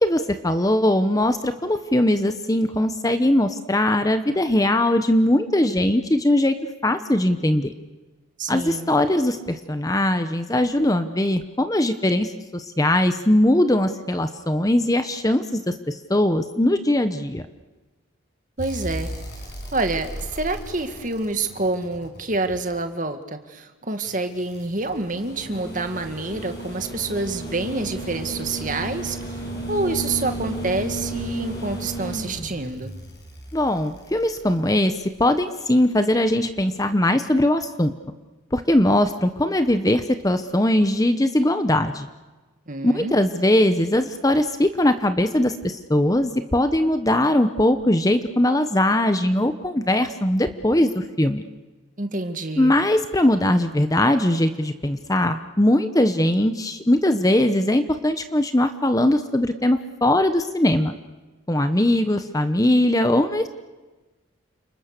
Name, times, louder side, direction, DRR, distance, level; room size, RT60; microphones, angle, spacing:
voice 1, 0.0-6.5 6.8-7.7 8.5-17.4 33.5-37.9 38.5-42.1 42.8-51.4 52.6-60.9 61.5-63.5, left 1 dB, 15° left, 9 dB, 0.9 m, -20 dB
voice 2, 8.4-8.9 18.6-19.1 19.7-29.4 29.7-32.9 42.7-43.2 52.0-52.7, right 2 dB, 40° right, 7 dB, 2.0 m, -27 dB
sound 1, 18.6-22.8 24.0-35.2 36.8-36.9, right 1 dB, 50° left, 6.4 m, -34 dB
29.5 x 27.5 x 6.7 m, 1.2 s
head